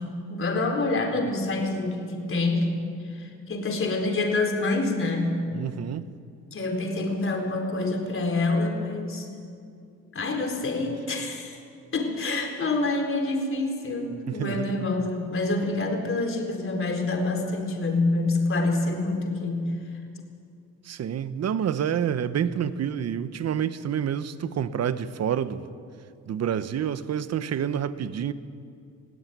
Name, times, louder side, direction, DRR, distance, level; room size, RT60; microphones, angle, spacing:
voice 1, 0.0-2.7 3.1-5.4 6.5-9.3 10.1-11.6 11.9-19.7, left 2 dB, 45° left, 2 dB, 4.3 m, -27 dB
voice 2, 5.5-6.1 14.3-14.9 20.9-25.7 26.3-28.3, right 8 dB, 55° right, 13 dB, 1.1 m, -28 dB
20.5 x 16.5 x 9.5 m, 2.4 s
cardioid pair, 90°, 30 cm